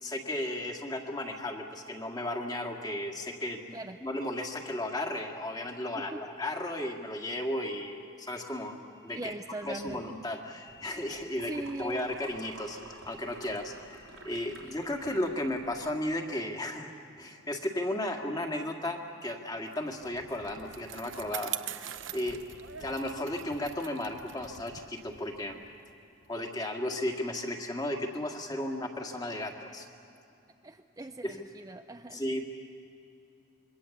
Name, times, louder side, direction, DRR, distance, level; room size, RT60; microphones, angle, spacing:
voice 1, 0.0-8.8 9.0-9.3 9.6-16.9 17.2-22.4 22.8-25.6 26.3-29.9 31.2-31.4 32.1-32.4, left 1 dB, 20° left, 2 dB, 2.0 m, -35 dB
voice 2, 9.1-10.0 11.5-12.0 30.6-32.2, right 2 dB, 20° right, 6 dB, 0.5 m, -40 dB
sound 1, 10.7-16.0, right 2 dB, 85° right, 3.5 m, -51 dB
Bicycle, 19.7-26.4, right 11 dB, 70° right, 0.8 m, -43 dB
26.5 x 23.5 x 7.2 m, 2.8 s
head